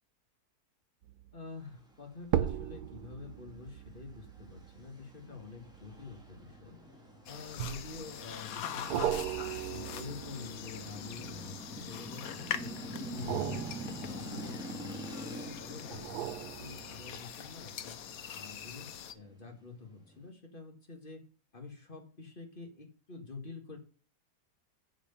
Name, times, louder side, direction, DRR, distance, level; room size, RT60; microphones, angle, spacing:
sound 1, 1.0-1.4 2.2-6.9 7.6-8.2 8.9-11.9 13.1-15.2 15.9-17.3 17.8-17.9, right 11 dB, 90° right, 1.2 m, -38 dB
voice 1, 1.3-6.8 7.3-9.2 9.7-13.6 14.0-18.0 18.4-21.2 21.5-23.8, left 4 dB, 35° left, 3 dB, 1.9 m, -47 dB
sound 2, 3.6-20.3, equal, 5° right, 1.7 m, -46 dB
sound 3, 7.3-19.1, left 9 dB, 65° left, 1.2 m, -43 dB
7.8 x 4.9 x 6.8 m, 0.38 s
omnidirectional pair, 1.7 m